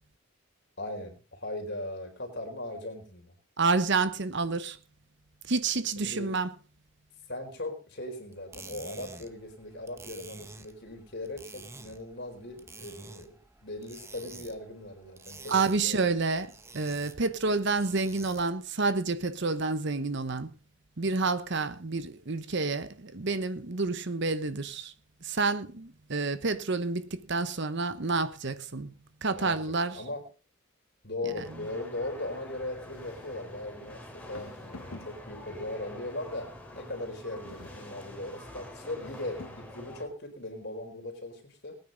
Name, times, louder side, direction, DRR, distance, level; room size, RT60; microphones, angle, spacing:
voice 1, 0.8-3.3 6.0-6.3 7.3-16.0 29.3-29.6 29.9-30.2 31.0-41.8, left 2 dB, 55° left, 4.0 m, -39 dB
voice 2, 3.6-4.8 5.4-6.5 15.5-20.5 21.0-24.9 25.2-28.9 29.2-30.0 31.2-31.4, right 3 dB, 55° right, 1.0 m, -29 dB
sound 1, 8.3-18.6, right 3 dB, 15° right, 0.9 m, -49 dB
sound 2, 31.4-40.1, left 1 dB, 5° left, 2.6 m, -46 dB
sound 3, 32.9-33.6 34.3-35.6 37.4-38.2 38.9-39.8, left 2 dB, 90° left, 1.5 m, -49 dB
20.0 x 9.3 x 3.9 m
head